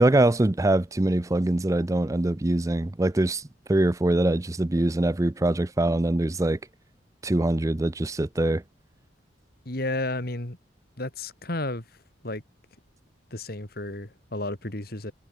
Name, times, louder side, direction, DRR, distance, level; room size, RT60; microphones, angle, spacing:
voice 1, 0.0-3.4 3.7-6.6 7.2-8.6, right 1 dB, 20° right, 0.5 m, -23 dB
voice 2, 9.6-10.6 11.0-11.9 12.2-12.4 13.3-15.1, left 2 dB, 55° left, 3.0 m, -32 dB
head